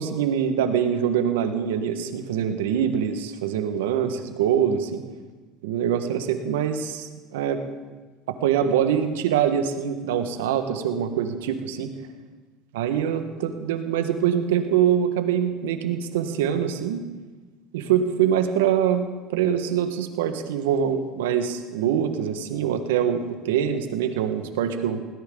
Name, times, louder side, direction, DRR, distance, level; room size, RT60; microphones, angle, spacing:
voice 1, 0.0-5.0 5.6-7.6 8.3-11.9 12.7-17.0 17.7-25.0, right 9 dB, 90° right, 8 dB, 1.4 m, -24 dB
20.5 x 17.0 x 3.9 m, 1.3 s
supercardioid pair, 95°, 0 cm